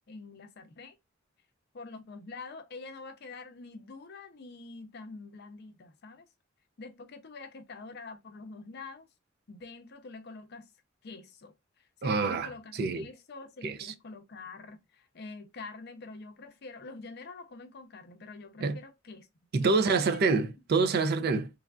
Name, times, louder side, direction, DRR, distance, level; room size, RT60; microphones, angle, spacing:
voice 1, 0.1-1.0 1.7-6.3 6.8-9.1 9.5-10.7 11.0-11.5 12.0-19.3 19.6-20.1, left 3 dB, 55° left, 0.5 m, -46 dB
voice 2, 12.0-12.5 12.8-13.1 13.6-13.8 18.6-18.8 19.5-21.5, right 4 dB, 50° right, 0.4 m, -26 dB
3.2 x 2.4 x 2.2 m
head